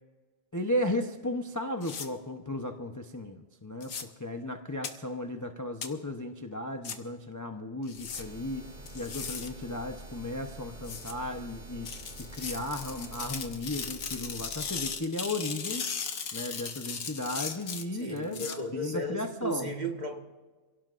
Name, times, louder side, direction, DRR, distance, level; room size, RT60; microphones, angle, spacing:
voice 1, 0.5-11.9 12.3-15.9 16.3-19.7, left 1 dB, 15° left, 4 dB, 0.8 m, -35 dB
sound 1, 1.8-2.1 3.8-4.0 4.8-4.9 5.8-5.9 6.8-7.0 7.9-8.2 8.9-9.5 10.8-11.1 11.9-18.6, left 6 dB, 80° left, 1.6 m, -37 dB
sound 2, 7.9-15.0, right 2 dB, 60° right, 2.0 m, -49 dB
sound 3, 8.1-13.3, right 1 dB, 85° right, 4.3 m, -50 dB
voice 2, 17.9-20.2, right 1 dB, 35° right, 2 dB, 1.8 m, -35 dB
28.5 x 17.0 x 2.6 m, 1.3 s
omnidirectional pair, 1.4 m